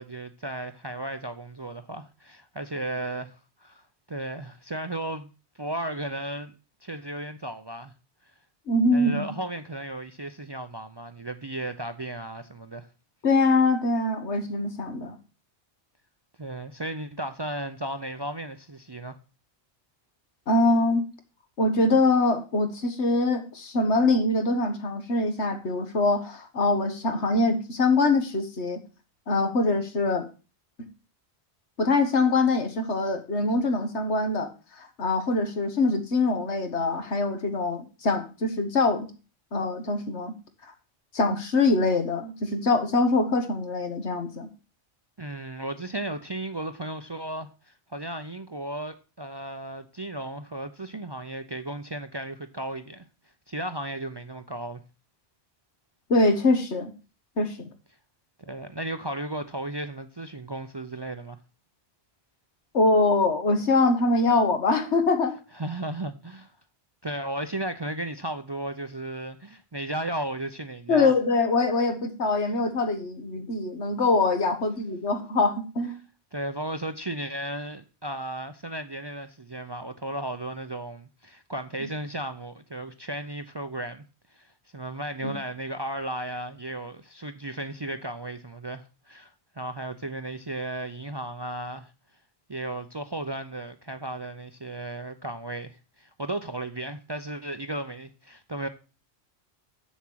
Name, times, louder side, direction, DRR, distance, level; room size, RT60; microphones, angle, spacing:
voice 1, 0.0-6.5 6.8-7.9 8.9-12.9 16.4-19.2 45.2-53.1 53.5-54.8 58.5-61.4 65.5-66.5 67.0-71.1 76.3-84.0 84.3-91.9 92.5-98.7, right 1 dB, 30° right, 0.5 m, -35 dB
voice 2, 8.7-9.3 13.2-15.2 20.5-21.0 21.6-28.8 29.3-30.3 30.8-30.9 31.8-34.5 34.8-39.1 39.5-40.3 41.1-44.5 56.1-56.9 57.4-57.7 62.7-65.4 70.9-75.9 81.8-81.9 85.2-85.4, left 3 dB, 80° left, 1.8 m, -24 dB
7.3 x 7.1 x 6.2 m
omnidirectional pair, 1.1 m